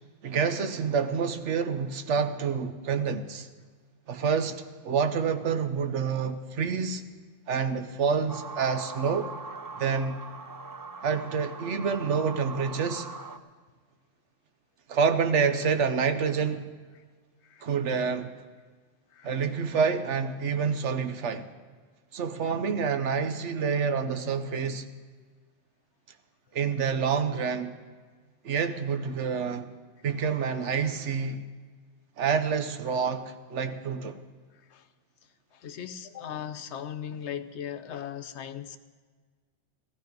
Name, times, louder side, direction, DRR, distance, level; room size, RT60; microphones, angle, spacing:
voice 1, 0.2-3.5 4.1-7.0 7.5-9.3 9.8-10.2 11.0-13.1 14.9-16.7 17.6-18.3 19.2-21.5 22.1-24.9 26.5-27.8 28.4-29.7 30.0-31.4 32.2-34.2, right 6 dB, 75° right, 1.2 m, -28 dB
sound 1, 8.3-13.4, right 4 dB, 30° right, 0.4 m, -41 dB
voice 2, 34.5-34.9 35.5-38.8, left 9 dB, 70° left, 1.0 m, -38 dB
16.0 x 14.5 x 5.2 m
omnidirectional pair, 1.2 m